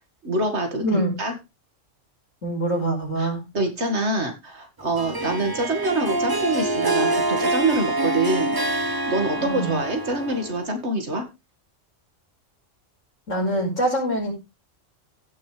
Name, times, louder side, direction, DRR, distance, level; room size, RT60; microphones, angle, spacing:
voice 1, 0.2-1.3 3.2-8.6 9.1-11.2, right 2 dB, 60° right, 5 dB, 2.3 m, -25 dB
voice 2, 0.8-1.2 2.4-3.4 9.4-9.8 13.3-14.3, right 1 dB, 80° left, 0 dB, 5.2 m, -24 dB
Harp, 5.0-10.8, right 2 dB, 20° right, 0.9 m, -26 dB
16.0 x 6.5 x 3.3 m, 0.25 s
omnidirectional pair, 1.3 m